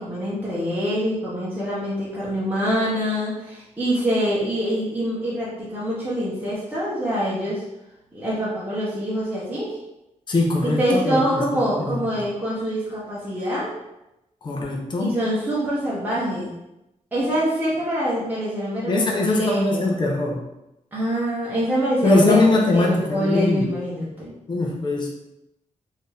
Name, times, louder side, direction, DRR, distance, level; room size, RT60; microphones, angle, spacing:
voice 1, 0.0-7.6 8.1-9.8 10.6-13.7 15.0-16.5 17.1-20.0 20.9-24.3, equal, 15° right, -9 dB, 0.9 m, -25 dB
voice 2, 10.3-11.4 11.8-12.3 14.4-15.2 18.9-20.4 22.0-23.7 24.5-25.1, left 2 dB, 35° left, -1 dB, 0.7 m, -21 dB
4.2 x 2.7 x 3.4 m, 0.90 s
wide cardioid pair, 180°, 13 cm